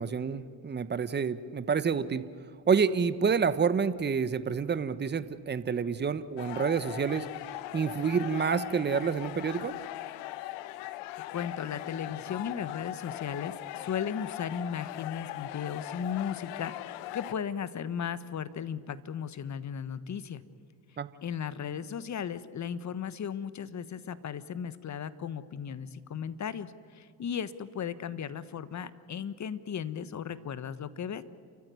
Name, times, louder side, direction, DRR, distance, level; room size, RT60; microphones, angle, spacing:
voice 1, 0.0-2.3 2.7-7.3 7.7-9.7 21.0-21.1, right 6 dB, 20° right, 14 dB, 1.1 m, -28 dB
sound 1, 6.4-17.3, left 15 dB, 70° left, 1.1 m, -40 dB
voice 2, 11.3-20.4 21.2-31.2, left 8 dB, 35° left, 15 dB, 1.3 m, -36 dB
30.0 x 14.5 x 9.6 m, 2.1 s
hypercardioid pair, 75°, 47 cm